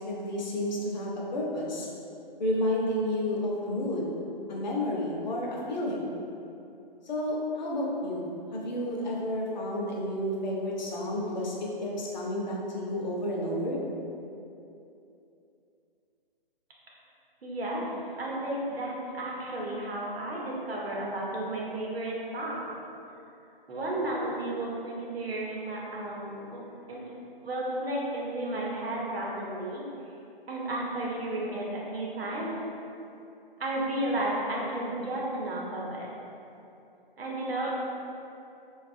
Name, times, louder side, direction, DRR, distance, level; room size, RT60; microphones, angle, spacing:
voice 1, 0.0-1.9 2.4-4.1 4.5-6.1 7.1-13.8, left 1 dB, 50° left, -3 dB, 0.6 m, -31 dB
voice 2, 17.4-17.8 18.2-22.7 23.7-26.6 26.9-27.0 27.4-29.8 30.5-32.6 33.6-36.1 37.2-37.7, right 1 dB, 85° right, -4 dB, 0.8 m, -33 dB
3.1 x 2.3 x 2.6 m, 2.7 s
hypercardioid pair, 160°, 29 cm